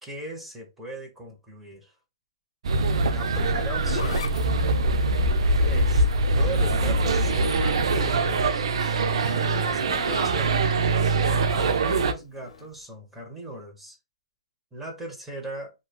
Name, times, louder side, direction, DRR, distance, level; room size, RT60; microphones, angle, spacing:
voice 1, 0.0-1.9 3.0-4.3 5.6-6.1 6.3-8.7 9.6-10.6 11.5-14.0 14.7-15.7, right 1 dB, 5° right, 0.9 m, -38 dB
sound 1, 2.6-12.1, right 2 dB, 65° right, 0.5 m, -23 dB
Zipper (clothing), 3.2-7.7 8.1-10.7 12.3-12.7, left 6 dB, 75° left, 0.6 m, -39 dB
2.9 x 2.3 x 2.3 m
hypercardioid pair, 140°, 3 cm